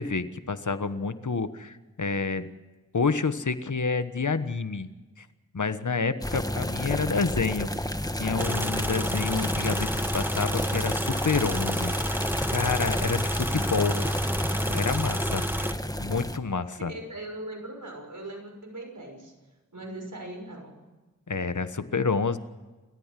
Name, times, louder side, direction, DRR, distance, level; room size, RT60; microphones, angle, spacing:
voice 1, 0.0-2.5 2.9-4.9 5.2-5.3 5.5-7.7 8.2-9.9 10.1-11.9 12.5-14.0 14.7-15.4 16.0-16.9 21.3-22.4, left 4 dB, 65° left, 11 dB, 1.3 m, -28 dB
sound 1, 6.2-16.4, left 1 dB, 10° left, 1.5 m, -31 dB
sound 2, 8.4-15.7, equal, 5° right, 1.2 m, -31 dB
voice 2, 16.8-19.3 19.7-20.9, right 1 dB, 70° right, 2 dB, 6.1 m, -40 dB
28.0 x 14.0 x 7.6 m, 1.2 s
wide cardioid pair, 50°, 32 cm